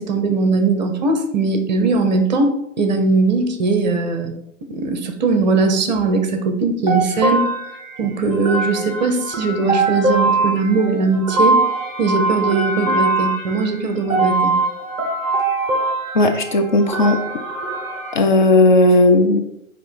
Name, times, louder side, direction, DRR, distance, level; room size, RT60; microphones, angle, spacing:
voice 1, 0.0-4.3 4.7-7.4 8.0-11.6 12.0-14.6, right 3 dB, 35° right, 6 dB, 0.8 m, -19 dB
sound 1, 6.9-18.2, right 2 dB, 10° right, 1.0 m, -22 dB
voice 2, 16.1-17.2 18.1-19.4, left 2 dB, 40° left, 4 dB, 0.6 m, -14 dB
9.0 x 3.0 x 4.4 m, 0.79 s
figure-of-eight pair, 125°, 39 cm